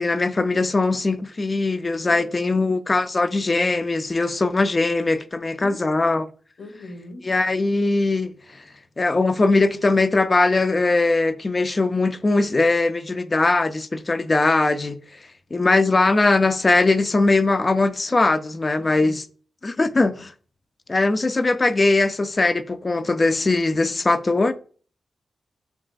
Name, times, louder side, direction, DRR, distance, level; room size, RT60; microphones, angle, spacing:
voice 1, 0.0-6.2 7.3-8.3 9.0-15.0 15.5-19.2 19.6-20.3 20.9-24.5, left 3 dB, 35° left, 0.4 m, -20 dB
voice 2, 2.0-2.6 5.6-6.1 6.6-7.3 18.8-19.2, left 1 dB, 65° left, 1.3 m, -41 dB
5.9 x 2.4 x 2.4 m
cardioid pair, 65°, 0 cm